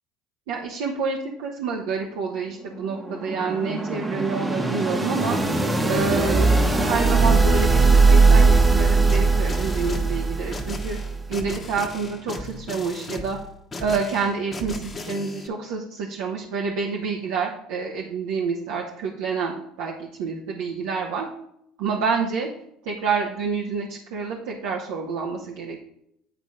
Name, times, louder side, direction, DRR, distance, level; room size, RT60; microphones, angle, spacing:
voice 1, 0.5-5.4 5.9-6.5 6.8-11.0 11.3-13.4 13.8-21.3 21.8-22.5 22.8-25.8, right 5 dB, 75° right, -1 dB, 1.0 m, -28 dB
sound 1, 2.4-11.3, right 3 dB, 15° right, 1.2 m, -20 dB
sound 2, 9.1-15.5, left 2 dB, 30° left, 1.2 m, -36 dB
9.0 x 4.1 x 4.8 m, 0.76 s
hypercardioid pair, 80°, 0 cm